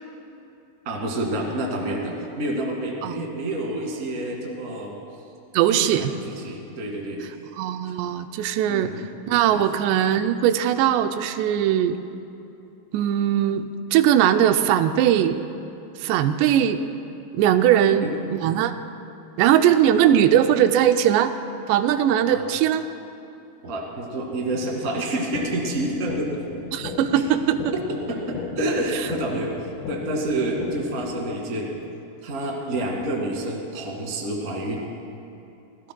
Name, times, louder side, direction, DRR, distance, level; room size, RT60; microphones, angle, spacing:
voice 1, 0.8-4.9 5.7-7.2 8.7-9.0 9.5-9.6 17.7-18.1 22.3-22.4 23.6-26.4 27.7-27.8 28.1-28.2 28.6-29.5 29.9-31.8 32.2-34.9, right 1 dB, 35° right, -1 dB, 1.4 m, -28 dB
voice 2, 5.5-6.1 7.6-12.0 12.9-15.4 16.0-16.8 17.3-18.8 19.4-21.3 21.7-22.9 26.7-27.7, right 10 dB, 85° right, 9 dB, 2.7 m, -20 dB
sound 1, 25.3-31.3, left 5 dB, 70° left, 2.6 m, -36 dB
25.5 x 17.0 x 2.3 m, 2.8 s
omnidirectional pair, 4.9 m